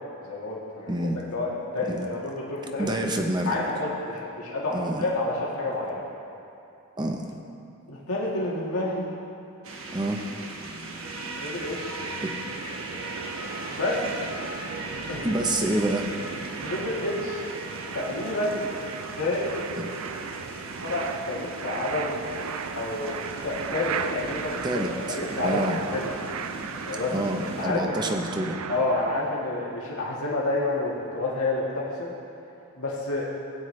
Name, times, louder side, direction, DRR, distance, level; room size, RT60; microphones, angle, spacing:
voice 1, 0.2-2.9 3.4-6.0 7.9-9.1 11.3-12.0 13.7-14.1 15.1-15.4 16.6-17.4 17.9-18.7 19.2-19.6 20.8-22.1 22.7-24.8 25.1-26.1 26.9-27.3 27.6-28.0 28.7-32.1 32.7-33.3, left 2 dB, 90° left, -5 dB, 1.6 m, -29 dB
voice 2, 0.9-1.2 1.9-2.1 2.8-3.6 4.7-5.1 7.0-7.2 9.9-10.2 12.2-12.3 15.2-16.1 19.8-19.9 24.6-25.8 27.1-28.6, right 1 dB, 20° right, 2 dB, 0.7 m, -27 dB
sound 1, 9.6-27.7, right 2 dB, 70° right, 1.1 m, -38 dB
sound 2, 10.5-29.2, right 6 dB, 90° right, 0.4 m, -37 dB
16.0 x 9.2 x 3.2 m, 2.8 s
head